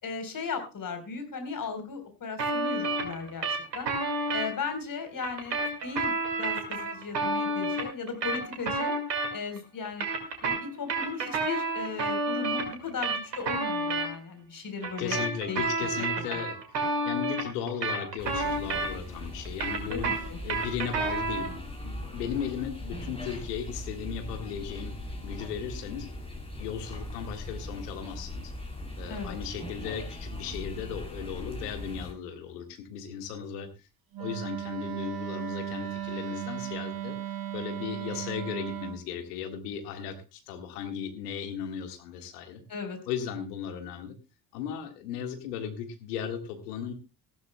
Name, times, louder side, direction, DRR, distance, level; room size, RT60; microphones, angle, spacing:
voice 1, 0.0-3.5 3.7-3.9 4.3-5.6 5.8-9.0 9.3-10.1 10.4-15.2 15.5-15.6 16.3-16.4 19.9-20.4 29.1-29.4 42.7-43.0, left 5 dB, 45° left, 6 dB, 4.0 m, -36 dB
sound 1, 2.4-4.5 5.2-9.6 9.9-14.1 14.8-19.2 19.5-21.6, right 2 dB, 85° right, 2.1 m, -30 dB
voice 2, 15.0-20.1 20.4-25.0 25.2-26.1 26.6-28.5 29.0-33.9 34.2-37.2 37.5-42.6 43.1-44.2 44.5-46.9, left 7 dB, 75° left, 6 dB, 1.8 m, -36 dB
sound 2, 18.2-32.1, left 1 dB, 10° left, 6.9 m, -40 dB
Wind instrument woodwind instrument, 34.1-39.0, right 12 dB, 50° right, 1.5 m, -36 dB
18.5 x 14.5 x 2.2 m, 0.28 s
figure-of-eight pair, 45°, 48 cm